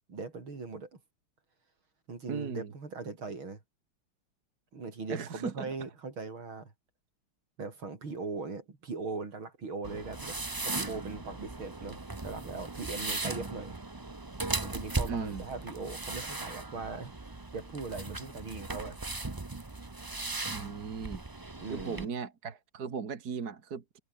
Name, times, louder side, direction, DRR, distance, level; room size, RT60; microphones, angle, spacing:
voice 1, 0.1-1.0 2.1-3.6 4.7-6.7 7.6-13.8 14.6-19.0 21.6-22.1, right 4 dB, 70° right, 5.0 m, -40 dB
voice 2, 2.3-2.7 5.1-5.7 15.1-15.5 20.5-21.2 21.7-24.0, right 6 dB, 50° right, 2.4 m, -37 dB
sound 1, 9.8-22.0, right 2 dB, 20° right, 0.6 m, -38 dB
omnidirectional pair, 2.3 m